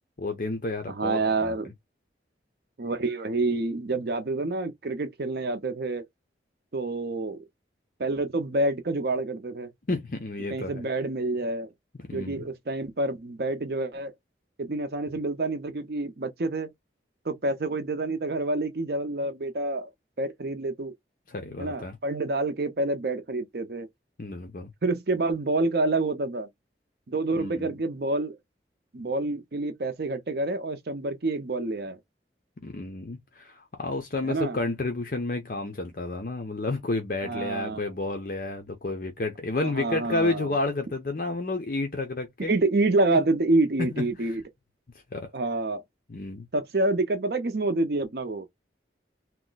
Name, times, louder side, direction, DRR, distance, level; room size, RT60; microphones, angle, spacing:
voice 1, 0.2-1.5 9.9-10.8 12.0-12.5 21.3-22.0 24.2-24.7 27.3-27.7 32.6-42.5 43.8-44.0 45.1-45.3 46.1-46.5, left 2 dB, 50° left, 0.6 m, -31 dB
voice 2, 0.9-1.7 2.8-6.0 6.7-7.4 8.0-9.7 10.5-11.7 12.1-14.1 14.6-16.7 17.3-19.9 20.2-20.9 21.6-23.9 24.8-26.5 27.1-28.4 28.9-32.0 34.2-34.6 37.2-37.8 39.6-40.5 42.4-44.4 45.3-45.8 46.5-48.5, right 2 dB, 60° right, 0.6 m, -28 dB
3.0 x 2.1 x 3.8 m
head